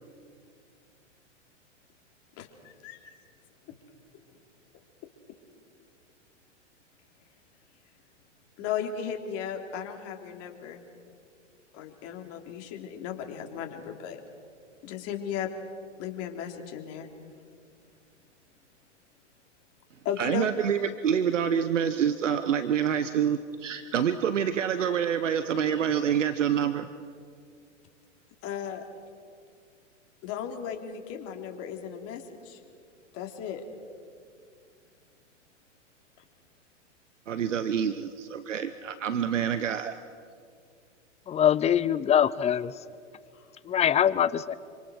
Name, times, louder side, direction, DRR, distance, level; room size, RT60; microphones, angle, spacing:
voice 1, 2.4-3.0 8.6-10.8 11.7-14.2 14.8-15.5 16.0-17.1 20.0-20.6 28.4-28.8 30.2-32.6 33.1-33.6 43.3-43.5, left 8 dB, 40° left, 3 dB, 3.4 m, -36 dB
voice 2, 20.2-26.9 37.3-40.0, right 8 dB, 80° right, 11 dB, 1.1 m, -27 dB
voice 3, 41.3-42.7 43.7-44.5, left 9 dB, 20° left, 17 dB, 0.7 m, -23 dB
27.5 x 26.0 x 6.5 m, 2.2 s
hypercardioid pair, 110°, 36 cm